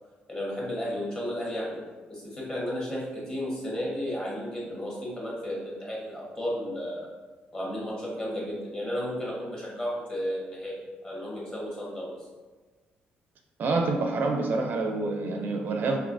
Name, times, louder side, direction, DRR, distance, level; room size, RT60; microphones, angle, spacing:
voice 1, 0.3-1.8 2.1-7.1 7.5-10.8 11.0-12.1, equal, 20° left, -4 dB, 1.2 m, -33 dB
voice 2, 13.6-16.0, right 3 dB, 55° right, 3 dB, 0.4 m, -27 dB
5.1 x 2.8 x 2.6 m, 1.3 s
cardioid pair, 145°, 4 cm